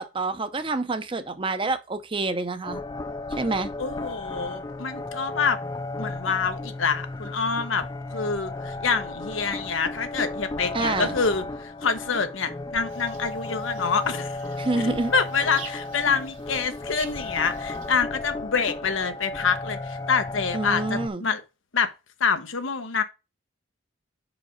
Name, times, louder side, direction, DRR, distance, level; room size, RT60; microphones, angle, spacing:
voice 1, 0.0-2.8 3.3-3.7 10.7-11.2 14.6-15.1 20.5-21.2, right 3 dB, 25° right, 0.6 m, -27 dB
sound 1, 2.6-21.1, left 2 dB, 20° left, 0.4 m, -34 dB
voice 2, 3.8-5.6 6.0-7.8 8.1-14.4 14.8-21.4 21.7-21.9 22.2-23.0, left 5 dB, 85° left, 0.9 m, -26 dB
sound 2, 12.9-18.0, right 4 dB, 85° right, 2.1 m, -46 dB
5.1 x 5.0 x 5.1 m
head